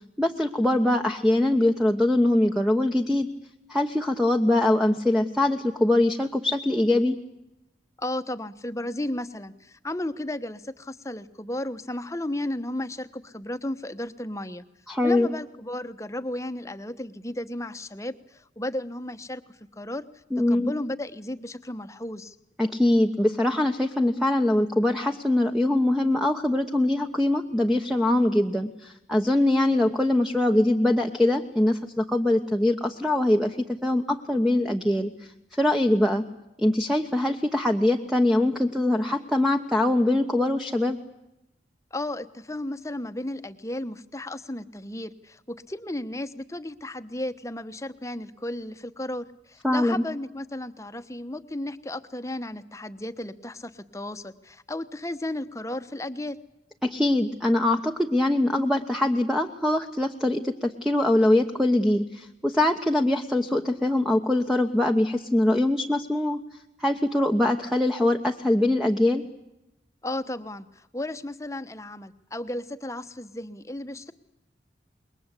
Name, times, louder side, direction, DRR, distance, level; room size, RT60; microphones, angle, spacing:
voice 1, 0.2-3.3 3.7-7.2 14.9-15.3 20.3-20.7 22.6-33.6 33.8-35.1 35.5-36.2 36.6-41.0 49.6-50.0 56.8-66.4 66.8-69.2, left 1 dB, ahead, 3 dB, 1.1 m, -23 dB
voice 2, 8.0-14.6 15.0-19.4 19.7-20.1 20.5-22.4 41.9-56.4 70.0-74.1, left 1 dB, 15° left, 11 dB, 1.1 m, -34 dB
27.0 x 22.0 x 8.4 m, 0.87 s
head